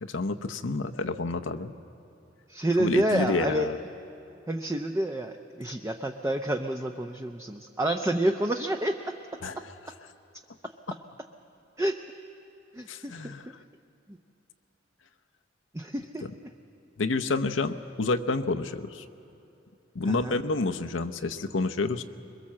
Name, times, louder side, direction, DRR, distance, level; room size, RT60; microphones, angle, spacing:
voice 1, 0.0-1.7 2.8-3.8 9.4-9.7 12.9-13.5 16.2-16.3 17.0-19.0 19.9-22.0, left 3 dB, 90° left, 8 dB, 0.8 m, -29 dB
voice 2, 2.5-3.7 4.5-9.2 11.8-12.0 12.8-13.3 15.7-16.3 20.1-20.4, right 1 dB, 15° right, 4 dB, 0.6 m, -28 dB
22.5 x 22.0 x 7.5 m, 2.8 s
head